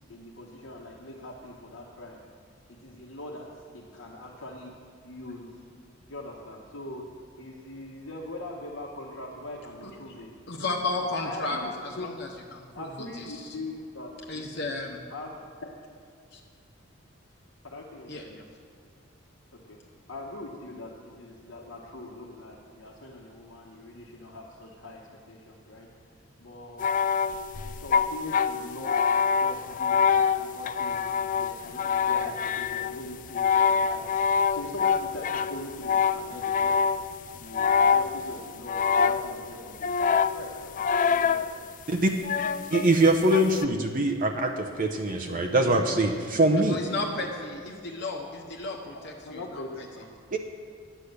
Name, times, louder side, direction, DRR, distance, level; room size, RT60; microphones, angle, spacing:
voice 1, 0.0-2.2 2.7-4.7 5.0-5.5 6.1-7.1 7.4-10.4 10.9-12.1 12.7-14.1 14.4-14.7 15.1-15.5 17.6-18.1 19.5-19.8 20.1-25.0 25.3-25.9 26.4-26.9 27.7-31.0 31.4-36.7 37.3-41.4 45.7-45.8 49.2-50.1, left 2 dB, 90° left, -3 dB, 1.2 m, -42 dB
voice 2, 10.5-13.5 14.3-15.1 16.3-16.4 18.1-18.4 46.7-49.9, left 2 dB, 60° left, 0 dB, 1.0 m, -34 dB
sound 1, 26.8-37.1 37.5-38.4 38.7-39.5 39.8-41.5 42.2-43.6, left 6 dB, 40° left, 0.3 m, -25 dB
voice 3, 42.7-46.8 50.3-50.4, right 1 dB, 45° right, 4 dB, 0.7 m, -23 dB
10.0 x 8.2 x 6.7 m, 2.3 s
head